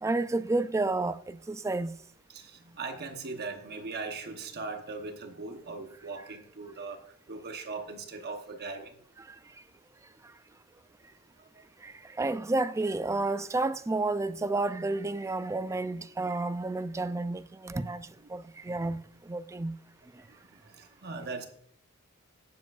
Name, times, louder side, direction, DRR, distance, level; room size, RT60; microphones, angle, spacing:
voice 1, 0.0-1.9 9.3-9.4 11.8-19.8, right 2 dB, 15° right, 0.3 m, -31 dB
voice 2, 2.3-9.0 17.8-17.9 20.2-21.5, right 3 dB, 50° right, 1.0 m, -40 dB
18.0 x 7.4 x 2.5 m
head